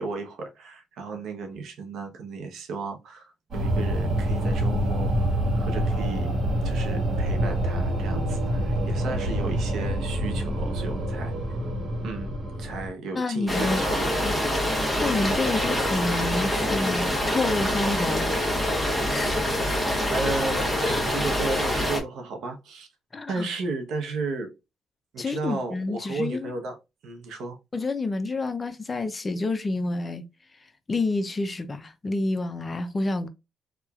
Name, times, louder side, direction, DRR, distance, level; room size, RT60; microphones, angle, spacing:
voice 1, 0.0-5.1 5.6-6.3 6.6-11.3 12.0-14.2 20.1-22.9 23.3-24.5 25.1-26.8 27.0-27.6, right 3 dB, 75° right, 0.8 m, -34 dB
sound 1, 3.5-12.9, right 1 dB, 55° right, 1.2 m, -26 dB
voice 2, 13.1-13.8 14.2-14.3 15.0-18.3 19.1-19.8 20.9-21.0 23.1-23.5 25.2-26.5 27.7-30.2 30.9-33.3, left 2 dB, 30° left, 0.5 m, -28 dB
sound 2, 13.5-22.0, left 1 dB, 5° left, 1.1 m, -25 dB
2.9 x 2.3 x 2.3 m
cardioid pair, 90°, 0 cm